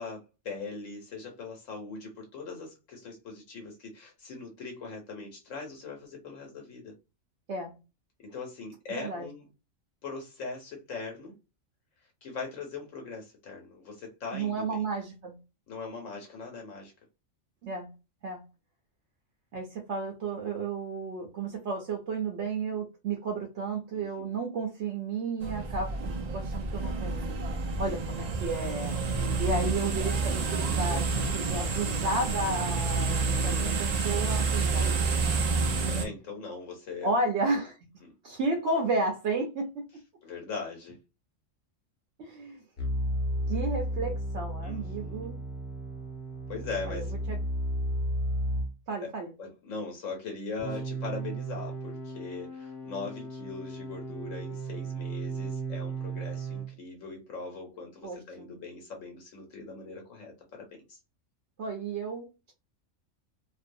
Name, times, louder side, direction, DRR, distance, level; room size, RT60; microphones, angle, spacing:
voice 1, 0.0-6.9 8.2-9.5 10.0-11.3 12.2-14.9 15.7-16.9 23.9-24.3 35.9-37.1 38.0-38.1 40.2-41.0 44.6-45.3 46.5-47.1 49.0-49.1 49.4-61.0, left 4 dB, 80° left, 1.1 m, -40 dB
voice 2, 8.9-9.3 14.3-15.4 17.6-17.9 18.2-18.4 19.5-27.5 27.8-35.1 37.0-37.8 38.2-39.9 42.2-42.6 43.5-45.4 46.9-47.0 47.3-47.4 48.9-49.3 58.0-58.5 61.6-62.5, right 3 dB, 70° right, 0.8 m, -33 dB
sound 1, 25.4-36.1, right 4 dB, 90° right, 0.3 m, -29 dB
sound 2, 42.8-48.7 50.6-56.7, right 1 dB, 55° left, 0.9 m, -34 dB
2.5 x 2.0 x 2.5 m
omnidirectional pair, 1.3 m